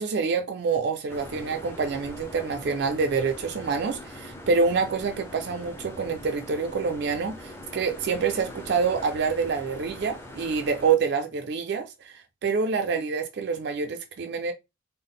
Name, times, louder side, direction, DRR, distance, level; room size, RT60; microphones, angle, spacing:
voice 1, 0.0-14.5, right 5 dB, 55° right, 0.3 m, -27 dB
sound 1, 1.1-10.9, left 1 dB, 10° left, 0.5 m, -42 dB
3.6 x 2.0 x 3.6 m
head